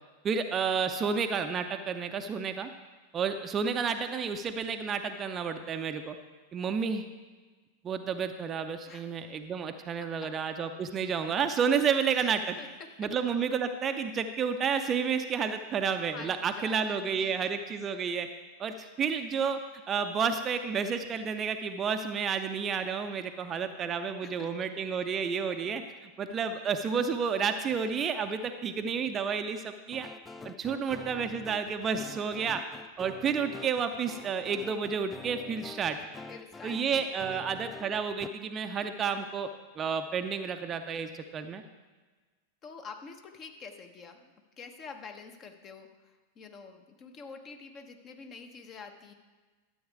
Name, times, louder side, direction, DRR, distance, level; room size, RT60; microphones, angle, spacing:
voice 1, 0.2-2.7 3.1-6.2 6.5-7.0 7.8-12.6 13.0-18.3 18.6-19.6 19.9-30.1 30.4-32.6 33.0-36.0 36.6-39.5 39.8-41.6, right 6 dB, 25° right, 7 dB, 0.6 m, -31 dB
voice 2, 8.9-9.2 10.0-10.3 12.1-13.2 16.1-17.6 24.2-24.7 36.3-37.4 42.6-49.1, left 5 dB, 30° left, 5 dB, 1.1 m, -48 dB
sound 1, 29.9-38.3, left 4 dB, 15° left, 0.4 m, -46 dB
12.5 x 8.0 x 4.7 m, 1.3 s
figure-of-eight pair, 90°, 0 cm